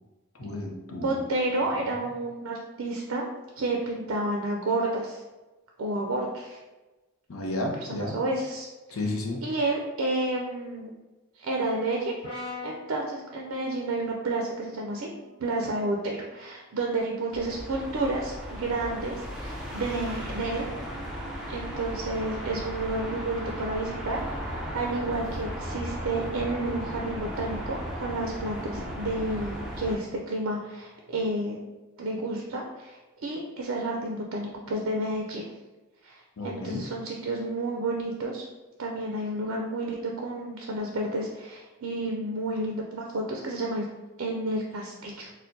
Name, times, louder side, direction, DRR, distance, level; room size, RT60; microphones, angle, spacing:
voice 1, 0.3-1.2 7.3-8.2 8.9-9.4 36.4-36.9, left 2 dB, 70° left, 1 dB, 0.6 m, -32 dB
voice 2, 0.9-5.2 5.8-6.6 7.9-8.7 9.4-10.9 11.4-12.1 12.6-15.1 15.4-20.7 21.5-24.2 24.7-31.6 32.0-35.5 36.0-38.4 38.8-43.9 44.2-45.3, right 2 dB, 60° right, 0 dB, 0.4 m, -30 dB
Brass instrument, 12.2-16.5, left 3 dB, 20° left, 1.3 m, -45 dB
sound 1, 17.3-30.0, equal, ahead, 0.4 m, -36 dB
4.3 x 2.1 x 2.6 m, 1.1 s
head